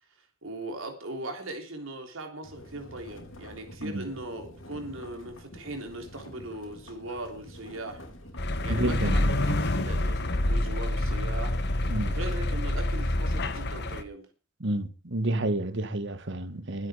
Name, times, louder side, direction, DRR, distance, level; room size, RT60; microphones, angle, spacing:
voice 1, 0.4-8.0 8.6-14.3, right 1 dB, 85° right, 3.4 m, -39 dB
sound 1, 2.4-12.6, left 1 dB, 90° left, 4.7 m, -47 dB
sound 2, 8.4-14.0, left 1 dB, 60° left, 1.5 m, -27 dB
voice 2, 8.7-9.4 11.9-12.2 14.6-16.9, right 1 dB, 65° right, 1.6 m, -30 dB
22.0 x 8.7 x 5.0 m
head